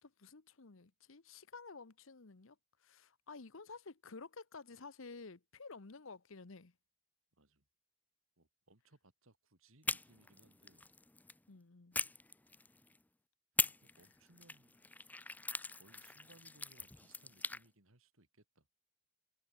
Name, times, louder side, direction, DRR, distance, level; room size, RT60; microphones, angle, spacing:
voice 1, 0.0-6.8 11.5-12.0, left 4 dB, 65° left, 1.0 m, -52 dB
voice 2, 8.4-10.8 13.8-14.8 15.8-18.7, right 2 dB, 70° right, 3.2 m, -66 dB
sound 1, 9.8-11.4 11.9-13.0 13.6-17.6, left 3 dB, 10° left, 0.5 m, -41 dB
head